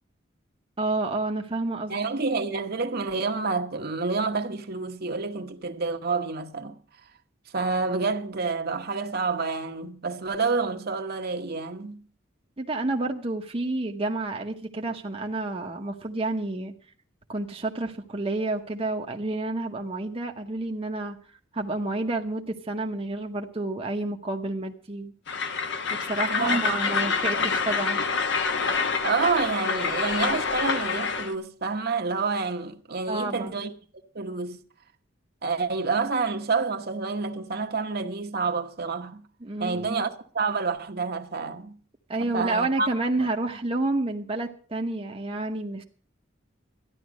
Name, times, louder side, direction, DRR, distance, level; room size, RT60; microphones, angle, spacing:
voice 1, 0.8-2.0 12.6-16.7 17.3-21.2 21.5-25.1 25.9-28.0 33.1-33.6 39.4-40.0 42.1-45.8, right 2 dB, 30° right, 0.9 m, -29 dB
voice 2, 1.9-6.8 7.5-12.0 26.3-27.9 29.0-33.7 34.1-34.6 35.4-39.2 39.6-41.8 42.2-42.9 43.2-43.3, right 4 dB, 55° right, 1.1 m, -28 dB
Train, 25.3-31.3, left 5 dB, 65° left, 1.2 m, -27 dB
13.5 x 10.5 x 6.2 m
head